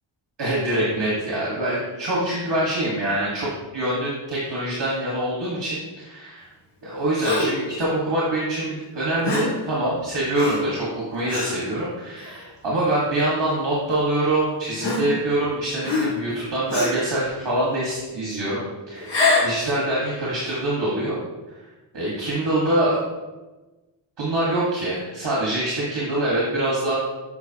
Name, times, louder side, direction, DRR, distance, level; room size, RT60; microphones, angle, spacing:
voice 1, 0.4-6.5 6.8-18.6 18.9-19.1 19.4-21.2 21.9-23.0 24.2-26.9, right 1 dB, 55° right, -6 dB, 1.6 m, -24 dB
Gasp, 7.2-7.7 9.2-9.6 10.3-10.7 11.3-11.6 12.3-12.4 13.5-13.6 14.8-15.5 15.8-16.3 16.7-17.1 19.0-19.6, left 3 dB, 55° left, 1.6 m, -24 dB
7.8 x 5.0 x 2.8 m, 1.1 s
wide cardioid pair, 90°, 49 cm